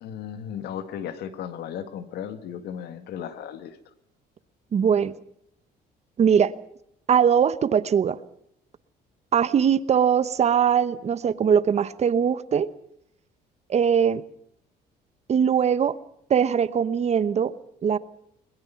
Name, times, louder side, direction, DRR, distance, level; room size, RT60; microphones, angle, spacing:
voice 1, 0.0-3.8, left 9 dB, 75° left, 11 dB, 1.9 m, -35 dB
voice 2, 4.7-5.1 6.2-6.5 7.1-8.2 9.3-12.7 13.7-14.2 15.3-15.9 16.3-17.5 17.8-18.0, right 7 dB, 40° right, 16 dB, 1.0 m, -21 dB
21.5 x 21.0 x 5.8 m, 0.72 s
cardioid pair, 110°, 17 cm